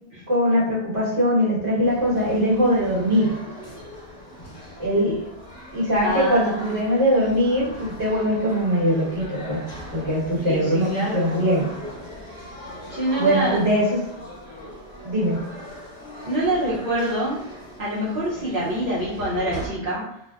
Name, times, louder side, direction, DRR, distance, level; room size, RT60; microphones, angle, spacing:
voice 1, 0.3-3.3 4.8-5.2 5.7-9.6 9.9-11.6 13.2-14.0 15.0-15.4, equal, 30° right, -9 dB, 1.1 m, -21 dB
sound 1, 1.8-19.7, equal, 40° left, 1.2 m, -40 dB
voice 2, 6.0-6.7 10.4-11.2 12.9-13.6 16.3-17.4 17.8-20.2, right 1 dB, 55° right, -9 dB, 0.8 m, -26 dB
2.5 x 2.1 x 2.3 m, 0.78 s
omnidirectional pair, 1.1 m